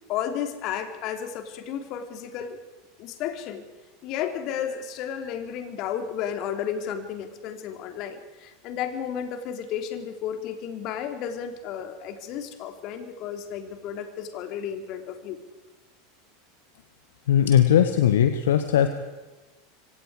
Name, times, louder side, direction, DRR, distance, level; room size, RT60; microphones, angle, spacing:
voice 1, 0.1-2.6 3.0-3.6 4.0-15.4, left 9 dB, 50° left, 6 dB, 3.3 m, -33 dB
voice 2, 17.3-18.9, left 10 dB, 70° left, 9 dB, 1.3 m, -19 dB
26.0 x 25.5 x 5.0 m, 1.1 s
figure-of-eight pair, 85°, 0 cm